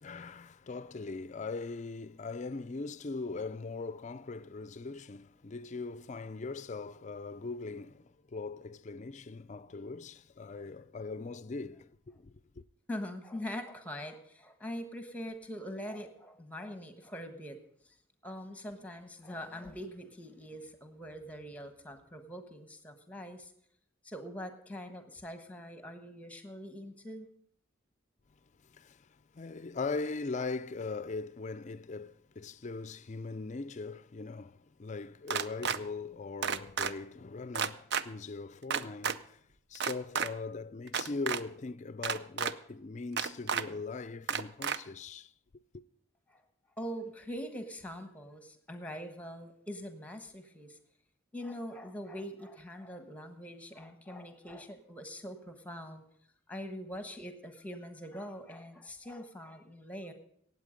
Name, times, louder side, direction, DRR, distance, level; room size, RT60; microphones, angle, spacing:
voice 1, 0.0-12.6 28.6-29.1 29.3-39.4 39.7-45.3 45.7-45.8, left 3 dB, 35° left, 0.4 m, -40 dB
voice 2, 12.9-17.6 17.8-18.0 18.2-23.5 24.0-27.3 46.3-46.4 46.8-50.8 51.3-56.0 56.5-60.1, equal, 5° left, 1.2 m, -43 dB
sound 1, 35.3-35.8 36.4-36.9 37.5-38.0 38.7-39.2 39.8-40.3 40.9-41.4 42.0-42.5 43.2-43.6 44.3-44.8, right 7 dB, 55° right, 0.5 m, -31 dB
17.5 x 8.1 x 5.1 m
head